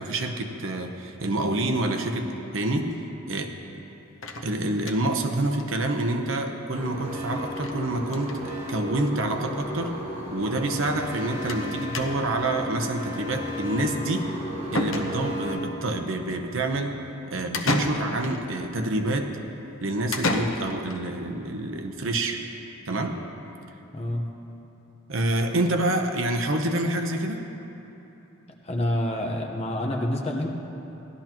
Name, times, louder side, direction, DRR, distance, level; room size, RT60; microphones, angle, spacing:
voice 1, 0.0-2.3 2.5-2.9 3.3-3.5 4.4-8.4 8.7-9.9 10.3-14.3 14.7-17.0 17.3-19.4 19.8-22.4 22.9-23.2 25.1-27.4, right 2 dB, 70° right, 4 dB, 0.9 m, -27 dB
sound 1, 4.2-5.2 5.6-5.7 6.0-6.1 6.3-6.4 7.6-7.8 8.1-8.4 9.3-9.4 9.7-9.8 11.5-11.7 11.9-12.4 14.2-14.3 14.7-15.5 17.5-18.4 20.1-21.0, left 2 dB, 70° left, 0.9 m, -30 dB
sound 2, 6.7-15.6, left 1 dB, 30° right, 1.9 m, -34 dB
voice 2, 23.9-24.3 28.6-30.5, left 1 dB, 30° left, 0 dB, 1.1 m, -27 dB
17.5 x 12.0 x 3.0 m, 3.0 s
head